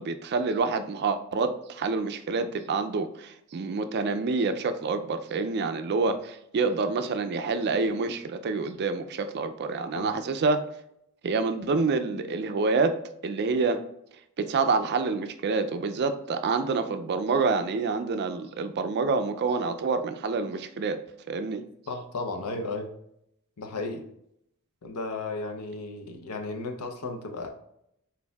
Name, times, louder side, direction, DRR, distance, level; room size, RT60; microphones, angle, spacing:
voice 1, 0.0-10.6 11.2-13.0 13.2-13.8 14.4-21.0 21.3-21.6, right 4 dB, 50° right, 0.4 m, -27 dB
voice 2, 21.9-22.9 23.6-24.1 24.8-27.5, left 3 dB, 85° left, 0.7 m, -34 dB
4.3 x 3.9 x 2.3 m
head